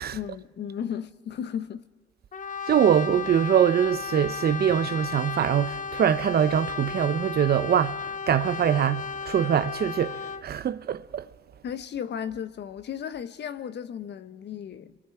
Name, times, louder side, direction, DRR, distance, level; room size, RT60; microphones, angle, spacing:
voice 1, 0.1-1.9 11.6-15.0, left 8 dB, 60° left, 1.1 m, -35 dB
Brass instrument, 2.3-10.5, left 6 dB, 40° left, 1.0 m, -34 dB
voice 2, 2.7-11.3, right 9 dB, 50° right, 0.7 m, -23 dB
28.5 x 23.5 x 4.8 m
cardioid pair, 90°, 20 cm